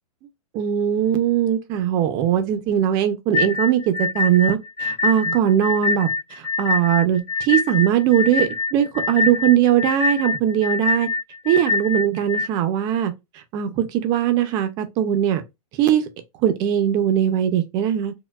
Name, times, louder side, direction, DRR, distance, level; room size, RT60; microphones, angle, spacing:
voice 1, 0.5-11.1 11.5-13.1 13.5-15.4 15.7-16.1 16.4-18.1, right 10 dB, 20° right, 0.4 m, -20 dB
sound 1, 3.3-12.5, left 4 dB, 65° left, 0.6 m, -24 dB
4.5 x 2.1 x 2.2 m
hypercardioid pair, 155°, 19 cm